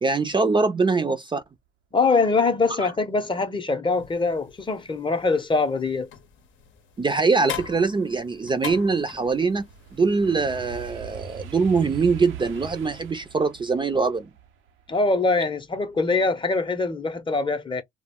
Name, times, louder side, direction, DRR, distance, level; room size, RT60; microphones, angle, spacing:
voice 1, 0.0-1.4 7.0-9.6 9.9-14.3, right 4 dB, 25° right, 0.5 m, -23 dB
voice 2, 1.9-6.1 14.9-17.8, left 3 dB, 25° left, 0.7 m, -23 dB
sound 1, 3.9-10.9, left 9 dB, 75° left, 0.7 m, -42 dB
sound 2, 6.6-6.7 7.2-16.3 16.7-17.1, right 7 dB, 80° right, 0.6 m, -42 dB
2.3 x 2.1 x 3.5 m
cardioid pair, 90°, 20 cm